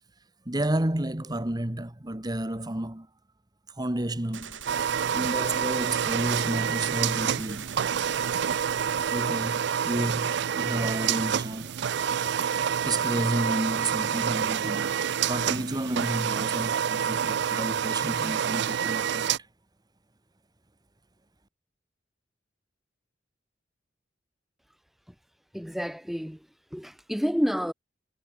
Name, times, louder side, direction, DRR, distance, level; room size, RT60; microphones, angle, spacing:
voice 1, 0.4-3.1 3.8-4.6 5.1-7.7 9.1-11.7 12.8-14.9 15.3-19.3, right 1 dB, 20° right, 1.5 m, -31 dB
Gunshot gunfire, 4.3-9.3, right 7 dB, 90° right, 7.5 m, -42 dB
sound 1, 4.7-19.4, right 8 dB, 65° right, 0.4 m, -28 dB
voice 2, 25.5-26.4 26.7-27.7, equal, ahead, 1.6 m, -29 dB
head